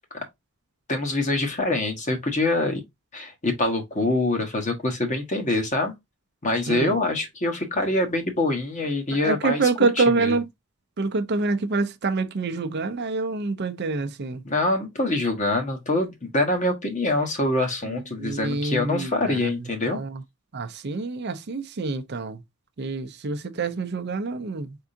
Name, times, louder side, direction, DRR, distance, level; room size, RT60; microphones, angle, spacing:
voice 1, 0.9-2.8 3.1-5.9 6.4-9.6 10.0-10.4 14.4-20.0, left 2 dB, 35° left, 1.2 m, -25 dB
voice 2, 9.2-10.5 11.0-14.4 17.9-19.6 19.9-20.2 20.5-22.4 22.8-24.8, right 3 dB, 50° right, 0.5 m, -26 dB
4.6 x 3.6 x 2.7 m
head